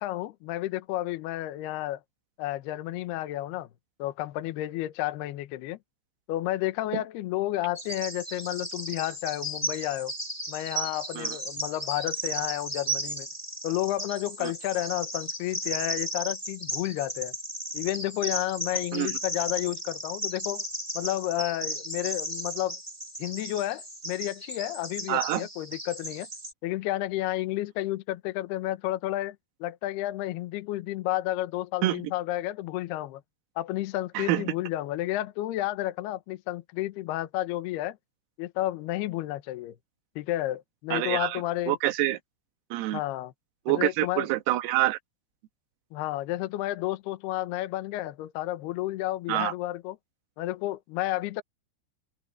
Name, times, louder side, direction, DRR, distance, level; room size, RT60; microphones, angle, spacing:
voice 1, 0.0-2.0 2.4-3.7 4.0-5.8 6.3-10.1 10.5-13.3 13.6-17.3 17.7-20.6 20.9-22.8 23.2-26.3 26.6-33.2 33.6-38.0 38.4-39.8 40.2-41.8 42.9-43.3 43.7-44.3 45.9-50.0 50.4-51.4, left 15 dB, 75° left, 2.5 m, -31 dB
Bird vocalization bird call bird song, 7.7-26.5, equal, 5° right, 6.1 m, -35 dB
voice 2, 25.1-25.5 31.8-32.0 34.2-34.4 40.9-42.2 42.7-43.0 43.7-45.0 49.3-49.5, right 16 dB, 85° right, 4.1 m, -27 dB
open air
omnidirectional pair, 6.0 m